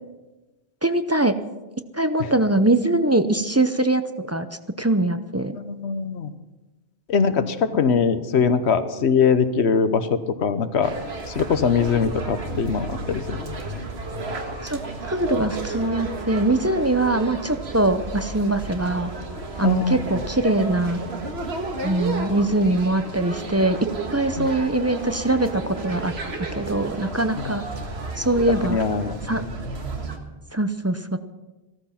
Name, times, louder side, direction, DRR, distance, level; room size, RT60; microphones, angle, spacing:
voice 1, 0.8-1.4 1.9-4.5 4.8-5.6 14.6-14.8 15.0-19.1 19.6-21.0 21.8-23.8 24.1-26.1 26.4-27.6 28.2-28.8 29.3-29.5 30.5-31.2, right 2 dB, 20° right, 10 dB, 0.5 m, -22 dB
voice 2, 5.6-6.3 7.1-10.9 11.3-13.4 19.6-20.2 24.4-24.5 27.4-27.5 28.7-29.1, left 6 dB, 90° left, 11 dB, 1.2 m, -22 dB
sound 1, 10.8-30.2, right 2 dB, 75° right, 1.8 m, -32 dB
15.5 x 14.0 x 5.8 m, 1.1 s
omnidirectional pair, 1.1 m